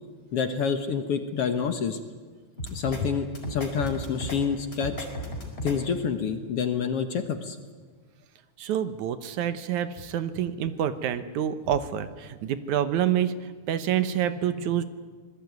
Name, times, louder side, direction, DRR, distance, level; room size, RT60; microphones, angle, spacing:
voice 1, 0.3-2.0 2.7-5.1 5.6-7.6, left 6 dB, 60° left, 8 dB, 1.8 m, -28 dB
sound 1, 2.6-3.0 3.3-4.4 4.7-5.7, equal, 15° left, 4.9 m, -34 dB
voice 2, 8.6-14.8, right 10 dB, 75° right, 12 dB, 2.3 m, -27 dB
26.0 x 20.5 x 9.4 m, 1.5 s
omnidirectional pair, 3.6 m